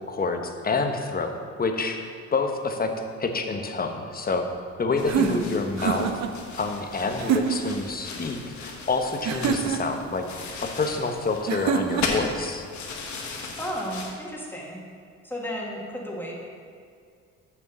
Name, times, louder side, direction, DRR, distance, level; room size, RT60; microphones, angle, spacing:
voice 1, 0.1-1.3 1.6-2.9 3.2-4.4 4.8-6.1 6.6-10.2 10.6-12.7, left 3 dB, 30° left, 5 dB, 1.0 m, -27 dB
sound 1, 5.0-14.1, left 4 dB, 70° left, 1.4 m, -37 dB
sound 2, 5.0-6.3 7.2-7.8 9.2-10.0 11.5-12.3, right 7 dB, 60° right, 0.8 m, -26 dB
voice 2, 5.1-5.4 13.4-14.8 15.2-16.4, equal, 5° left, -3 dB, 2.0 m, -33 dB
7.0 x 6.3 x 7.2 m, 2.3 s
cardioid pair, 90°, 30 cm